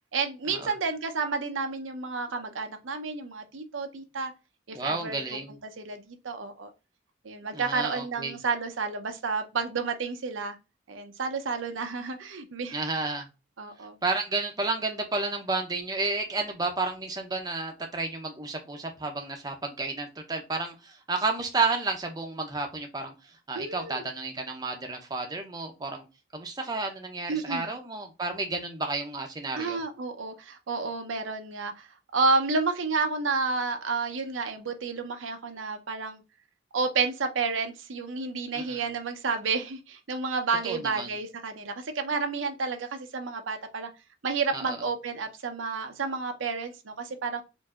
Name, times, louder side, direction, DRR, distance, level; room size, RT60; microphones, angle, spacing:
voice 1, 0.1-4.3 4.7-5.2 5.6-6.7 7.2-10.6 10.9-12.8 13.6-14.0 23.5-24.0 27.3-27.7 29.6-31.9 32.1-36.2 36.7-43.9 44.2-47.4, right 4 dB, 80° right, 0.7 m, -30 dB
voice 2, 4.7-5.6 7.5-8.4 12.7-13.3 14.0-26.1 26.3-29.8 38.5-38.8 40.6-41.1 44.5-44.8, right 3 dB, 20° right, 0.6 m, -31 dB
4.6 x 2.6 x 2.4 m
head